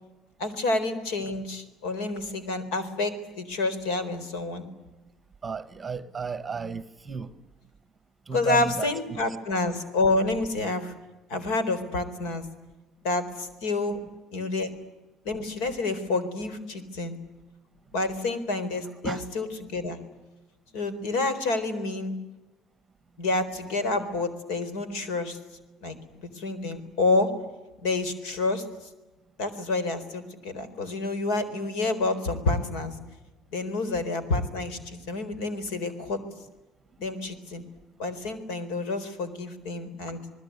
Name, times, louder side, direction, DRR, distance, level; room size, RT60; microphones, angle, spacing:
voice 1, 0.4-4.7 8.3-10.9 11.3-12.5 13.0-14.0 14.3-14.7 15.2-17.2 17.9-20.0 20.7-22.1 23.2-25.4 25.8-27.3 27.8-28.6 29.4-32.9 33.5-36.2 37.0-37.6 38.0-40.2, left 2 dB, 90° left, 4.1 m, -28 dB
voice 2, 5.4-7.3 8.3-9.2 14.8-14.9 19.0-19.3, right 5 dB, 15° right, 1.0 m, -34 dB
28.5 x 20.0 x 9.6 m
cardioid pair, 180°, 0 cm